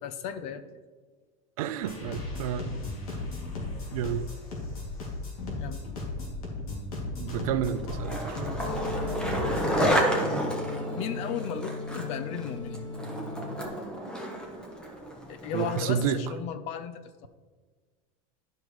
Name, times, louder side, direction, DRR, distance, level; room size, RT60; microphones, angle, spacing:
voice 1, 0.0-0.7 5.6-5.8 9.8-10.1 10.9-12.9 15.3-17.3, left 8 dB, 35° left, 11 dB, 0.5 m, -35 dB
voice 2, 1.6-2.8 3.9-4.3 7.2-8.5 15.5-16.2, right 9 dB, 80° right, 11 dB, 0.6 m, -30 dB
sound 1, 1.8-9.9, left 2 dB, 85° left, 2.4 m, -36 dB
Skateboard, 7.7-16.0, right 1 dB, 5° left, 0.8 m, -31 dB
sound 2, 8.6-13.6, left 2 dB, 55° left, 1.8 m, -36 dB
11.5 x 5.3 x 3.1 m, 1.4 s
supercardioid pair, 165°, 18 cm